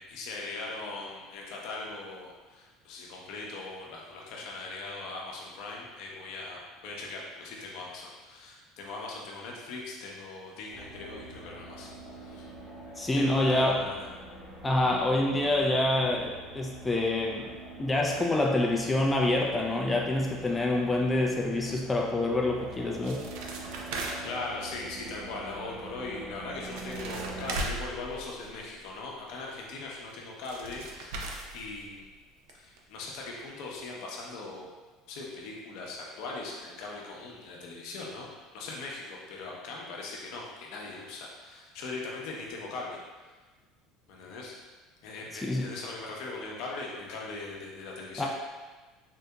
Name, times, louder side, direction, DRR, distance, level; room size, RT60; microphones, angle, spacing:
voice 1, 0.0-12.5 13.1-14.0 24.2-32.1 32.6-34.7 35.1-43.3 44.1-44.5 45.0-48.3, left 3 dB, 70° left, -2 dB, 0.7 m, -40 dB
sound 1, 10.7-27.6, right 2 dB, 25° right, 0.9 m, -45 dB
voice 2, 13.0-13.8 14.6-17.5 17.8-23.2 45.3-45.7 48.2-48.3, left 2 dB, 10° left, -1 dB, 0.3 m, -26 dB
sound 2, 22.7-24.5 26.4-26.5 26.7-28.9 30.1-30.2 30.4-32.2 32.5-32.6 32.8-32.9 33.4-33.5 33.8-33.9, right 2 dB, 75° right, 0.4 m, -38 dB
3.7 x 2.7 x 2.2 m, 1.3 s
supercardioid pair, 110°, 0 cm